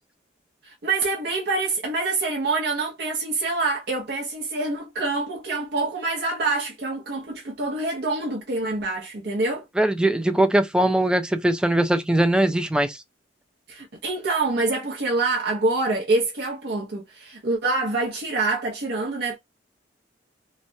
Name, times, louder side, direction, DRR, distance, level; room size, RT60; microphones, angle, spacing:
voice 1, 0.6-9.7 13.7-19.4, right 3 dB, 65° right, 0.7 m, -26 dB
voice 2, 9.8-13.0, right 1 dB, 5° right, 0.3 m, -21 dB
3.2 x 2.2 x 2.6 m
head